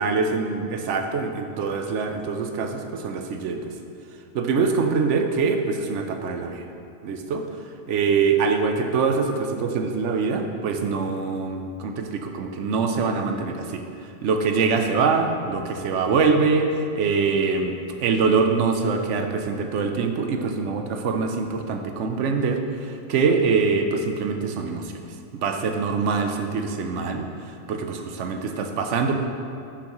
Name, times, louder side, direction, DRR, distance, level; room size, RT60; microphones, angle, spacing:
voice 1, 0.0-3.6 4.3-6.6 7.0-7.4 7.9-13.8 14.2-25.0 25.3-27.3 27.7-29.2, right 4 dB, 70° right, 5 dB, 1.0 m, -24 dB
9.9 x 6.0 x 3.0 m, 2.6 s
omnidirectional pair, 1.3 m